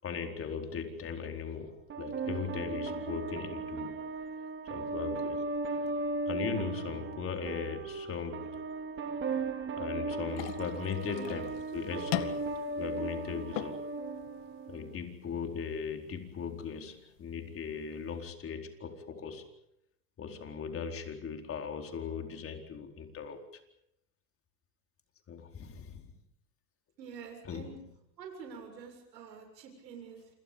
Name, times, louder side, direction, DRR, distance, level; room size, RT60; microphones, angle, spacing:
voice 1, 0.0-4.0 4.7-5.4 6.3-8.7 9.8-13.9 14.7-19.5 20.2-23.6 25.3-26.1 27.4-27.8, left 6 dB, 25° left, 5 dB, 4.4 m, -39 dB
sound 1, 1.9-14.9, right 3 dB, 25° right, 2.6 m, -37 dB
sound 2, 10.3-18.3, left 17 dB, 50° left, 2.2 m, -43 dB
voice 2, 11.1-11.5 27.0-27.8 28.2-30.3, right 6 dB, 75° right, 4 dB, 7.4 m, -47 dB
28.5 x 27.5 x 5.5 m, 0.79 s
hypercardioid pair, 120°, 50 cm